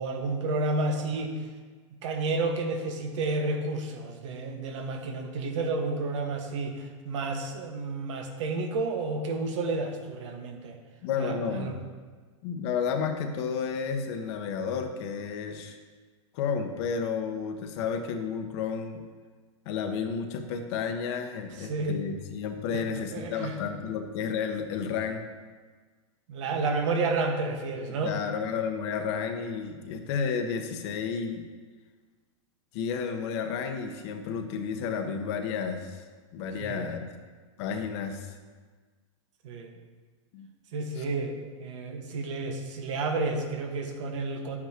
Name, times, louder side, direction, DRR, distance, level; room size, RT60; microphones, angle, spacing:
voice 1, 0.0-1.4 2.0-10.8 11.2-11.8 21.6-22.0 22.7-22.8 23.1-23.6 26.3-28.1 36.6-36.8 39.4-39.7 40.7-44.6, right 3 dB, 70° right, 3 dB, 1.5 m, -31 dB
voice 2, 11.0-11.8 12.4-15.8 16.3-19.0 19.6-25.2 27.9-31.4 32.7-36.0 36.3-37.0 37.6-38.4 40.3-40.5 41.0-41.1, left 6 dB, 60° left, 6 dB, 1.1 m, -32 dB
11.0 x 8.7 x 3.0 m, 1.4 s
hypercardioid pair, 120°, 16 cm